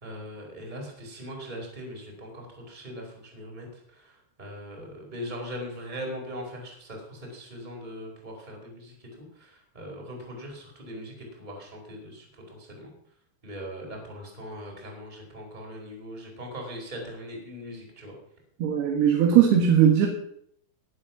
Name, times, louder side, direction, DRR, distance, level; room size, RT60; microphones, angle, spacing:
voice 1, 0.0-3.7 4.0-12.9 13.4-18.1, equal, 10° right, 0 dB, 4.2 m, -40 dB
voice 2, 18.6-20.1, right 9 dB, 65° right, 1 dB, 3.4 m, -19 dB
19.5 x 8.7 x 6.0 m, 0.69 s
omnidirectional pair, 5.4 m